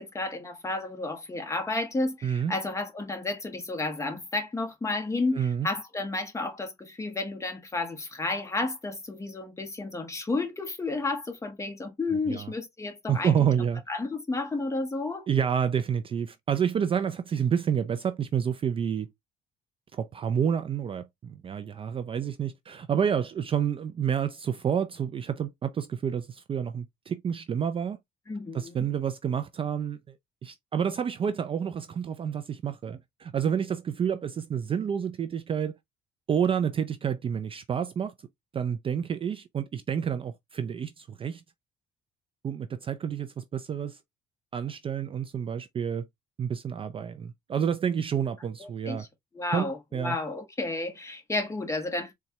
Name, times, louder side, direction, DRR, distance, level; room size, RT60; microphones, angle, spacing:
voice 1, 0.0-13.3 13.9-15.3 28.3-28.7 48.6-49.1 49.3-52.1, left 2 dB, 15° left, 1.1 m, -32 dB
voice 2, 2.2-2.5 5.3-5.7 12.3-12.5 13.1-13.8 15.3-19.1 19.9-28.0 28.5-30.2 30.4-35.8 36.3-38.1 38.5-41.4 42.4-44.0 44.5-46.1 46.4-49.1 49.5-50.2, right 8 dB, 30° right, 0.4 m, -29 dB
4.1 x 2.3 x 2.7 m
cardioid pair, 110°, 17 cm